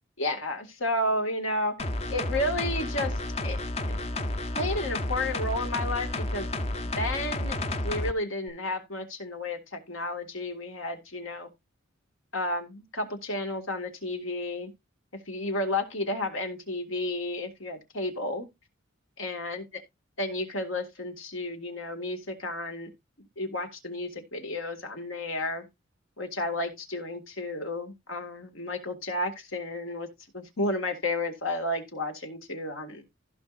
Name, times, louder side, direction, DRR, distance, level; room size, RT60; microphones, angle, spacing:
voice 1, 0.2-1.7 2.1-3.6 3.9-4.0 4.5-6.6 6.8-7.6 7.8-11.5 12.3-14.7 15.3-18.5 19.2-19.6 20.2-22.9 23.4-25.7 26.2-30.1 30.3-33.0, left 1 dB, 75° left, 2.0 m, -32 dB
sound 1, 1.8-8.1 8.5-8.6, left 1 dB, 30° left, 0.7 m, -31 dB
15.5 x 5.5 x 2.5 m
head